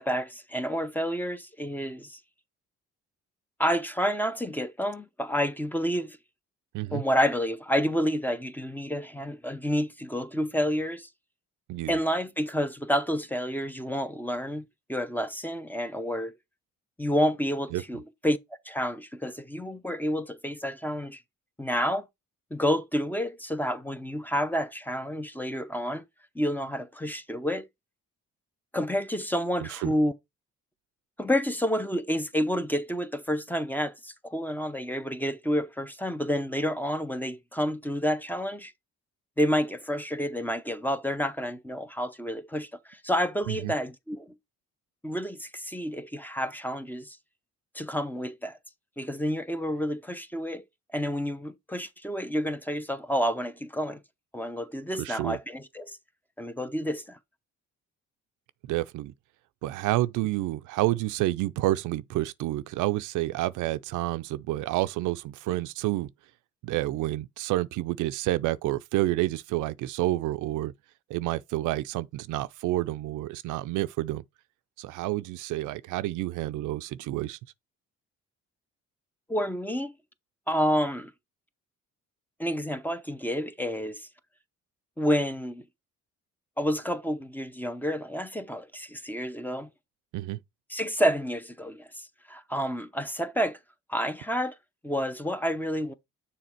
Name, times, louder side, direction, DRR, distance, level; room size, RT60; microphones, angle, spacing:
voice 1, 0.0-2.2 3.6-6.2 6.9-11.1 11.9-16.3 17.0-18.4 18.7-21.2 21.6-22.1 22.5-26.0 26.3-27.7 28.7-30.1 31.2-38.7 39.4-44.3 45.0-47.2 47.7-48.6 49.0-50.6 50.9-54.0 54.3-56.0 56.4-57.2 79.3-79.9 80.5-81.1 82.4-84.1 85.0-85.6 86.6-89.7 90.7-93.6 93.9-94.6 94.8-95.9, equal, 5° left, 0.6 m, -29 dB
voice 2, 55.0-55.4 58.6-59.1 59.6-66.1 66.6-70.7 71.1-74.2 74.8-77.4 90.1-90.4, right 16 dB, 90° right, 0.5 m, -29 dB
6.7 x 3.6 x 4.4 m
cardioid pair, 90°, 30 cm